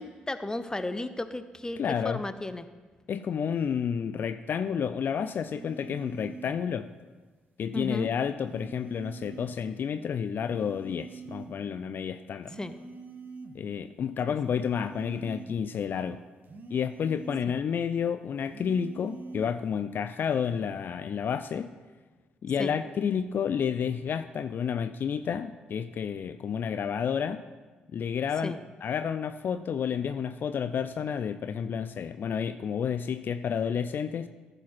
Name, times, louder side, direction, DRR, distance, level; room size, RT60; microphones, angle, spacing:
voice 1, 0.0-2.7 7.7-8.1 12.6-12.7 22.6-22.7 28.4-28.6, left 2 dB, 15° left, 12 dB, 0.7 m, -34 dB
voice 2, 1.8-2.2 3.1-6.9 7.6-12.5 13.5-16.2 16.7-21.7 22.4-27.5 27.9-34.3, left 7 dB, 50° left, 11 dB, 0.3 m, -30 dB
sound 1, 5.5-6.6 8.5-9.6 10.5-11.6 12.5-13.6 14.4-15.6 16.5-17.6 18.4-19.6 20.4-20.8, right 3 dB, 45° right, 1.1 m, -44 dB
14.5 x 4.9 x 6.0 m, 1.3 s
hypercardioid pair, 40°, 4 cm